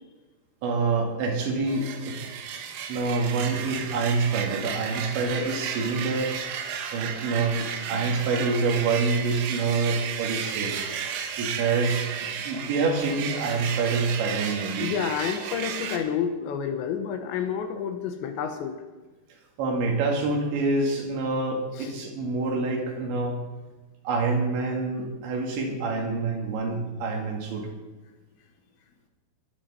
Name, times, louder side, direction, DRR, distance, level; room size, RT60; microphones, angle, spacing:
voice 1, 0.6-2.2 2.9-6.3 6.9-10.7 11.4-14.9 19.6-23.4 24.0-27.7, right 3 dB, 70° right, 0 dB, 4.3 m, -26 dB
sound 1, 1.7-16.0, right 7 dB, 85° right, 3.9 m, -33 dB
voice 2, 14.8-18.8 21.8-21.9, left 7 dB, 75° left, 6 dB, 3.0 m, -29 dB
22.0 x 10.5 x 4.3 m, 1.2 s
omnidirectional pair, 5.6 m